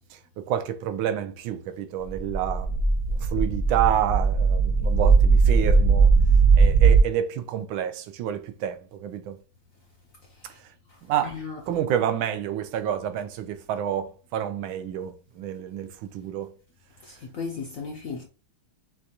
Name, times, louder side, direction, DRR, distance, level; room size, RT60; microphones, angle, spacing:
voice 1, 0.4-2.7 3.2-6.1 6.6-9.4 11.1-11.4 11.7-16.5, right 10 dB, 90° right, 1.4 m, -29 dB
sound 1, 2.1-7.0, right 5 dB, 60° right, 1.1 m, -19 dB
voice 2, 10.9-11.6 17.0-18.3, left 5 dB, 65° left, 0.8 m, -36 dB
6.4 x 2.4 x 2.9 m
omnidirectional pair, 2.2 m